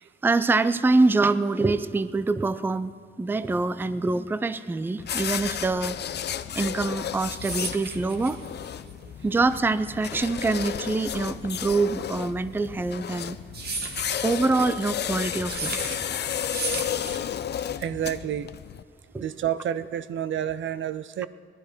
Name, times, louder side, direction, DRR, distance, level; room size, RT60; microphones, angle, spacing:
voice 1, 0.2-2.9 3.2-6.0 6.5-8.4 9.2-13.4 14.2-16.0 19.1-19.3, right 3 dB, 10° right, 14 dB, 0.4 m, -25 dB
sound 1, 5.0-18.8, left 9 dB, 60° left, 0.5 m, -33 dB
sound 2, 6.9-17.7, right 3 dB, 55° right, 1.6 m, -36 dB
voice 2, 17.8-18.5 19.2-21.3, right 10 dB, 75° right, 14 dB, 0.5 m, -29 dB
18.5 x 12.5 x 4.5 m, 2.3 s
wide cardioid pair, 135°, 20 cm